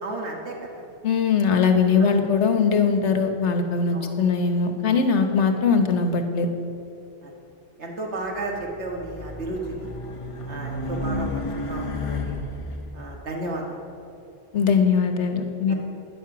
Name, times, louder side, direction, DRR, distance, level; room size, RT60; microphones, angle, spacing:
voice 1, 0.0-0.9 2.0-2.1 3.9-4.1 7.2-7.3 7.8-9.9 10.5-12.3 12.9-13.8 15.7-15.8, right 2 dB, 75° right, 0 dB, 1.8 m, -33 dB
voice 2, 1.0-6.5 14.5-15.7, left 5 dB, 80° left, 6 dB, 1.3 m, -21 dB
Race car auto racing, 8.5-12.8, left 1 dB, 30° left, 0.8 m, -31 dB
12.5 x 10.0 x 6.0 m, 2.8 s
omnidirectional pair, 1.2 m